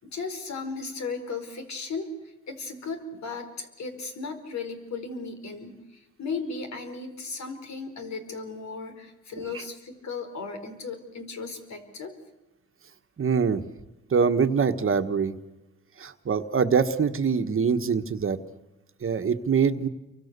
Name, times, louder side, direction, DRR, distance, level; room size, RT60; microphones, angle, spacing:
voice 1, 0.0-2.1 2.5-12.1, left 4 dB, 65° left, 6 dB, 4.7 m, -36 dB
voice 2, 13.2-13.6 14.1-15.3 16.0-18.4 19.0-19.9, right 6 dB, 45° right, 8 dB, 1.4 m, -24 dB
29.5 x 24.0 x 6.8 m, 1.0 s
cardioid pair, 100°, 30 cm